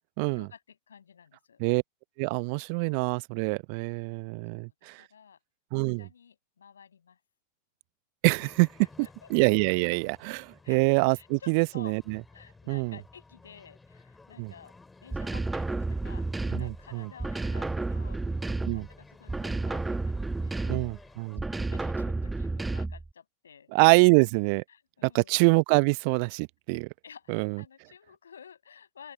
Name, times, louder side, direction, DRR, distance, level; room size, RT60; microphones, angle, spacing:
voice 1, 0.3-1.6 4.5-5.4 5.8-7.2 8.8-9.3 10.6-10.8 11.2-12.0 12.3-14.7 15.0-18.2 18.7-20.7 21.4-23.7 24.7-25.3 27.0-29.1, left 7 dB, 70° left, 6.7 m, -52 dB
voice 2, 2.2-5.0 5.7-6.1 8.2-8.7 9.3-12.2 12.7-13.0 14.4-14.5 16.5-17.1 18.7-18.9 20.7-21.4 23.7-24.6 25.0-26.9 27.3-27.6, right 35 dB, 45° right, 0.9 m, -25 dB
sound 1, 8.3-21.4, left 3 dB, 10° left, 3.6 m, -55 dB
sound 2, 15.1-16.8 17.2-18.9 19.3-21.0 21.4-23.1, right 3 dB, 10° right, 1.2 m, -31 dB
open air
figure-of-eight pair, 90°, 0 cm